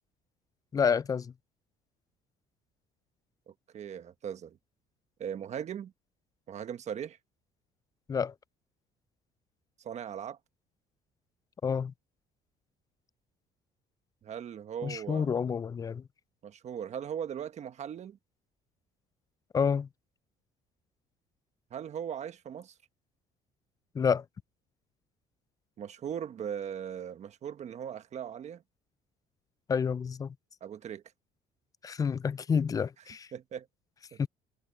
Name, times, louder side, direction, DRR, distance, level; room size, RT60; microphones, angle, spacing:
voice 1, 0.7-1.3 8.1-8.3 11.6-11.9 14.8-16.0 19.5-19.9 23.9-24.2 29.7-30.3 31.8-33.3 34.2-34.3, left 6 dB, 20° left, 0.3 m, -29 dB
voice 2, 3.5-4.6 5.2-5.9 6.5-7.2 9.8-10.4 14.2-15.4 16.4-18.2 21.7-22.7 25.8-28.6 30.6-31.0 33.3-33.7 34.1-34.3, right 8 dB, 45° right, 1.3 m, -39 dB
cardioid pair, 120°, 16 cm